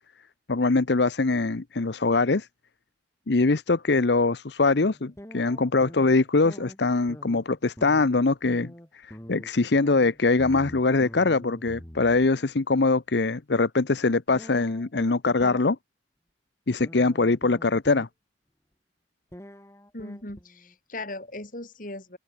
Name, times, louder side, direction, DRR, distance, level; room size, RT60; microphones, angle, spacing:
voice 1, 0.5-2.5 3.3-15.8 16.7-18.1, left 3 dB, 65° left, 0.8 m, -23 dB
sound 1, 4.6-6.2 6.4-12.3 14.3-15.6 16.8-18.1 19.3-20.7, equal, 15° left, 2.4 m, -45 dB
voice 2, 19.9-22.2, left 2 dB, 45° left, 5.8 m, -38 dB
open air
head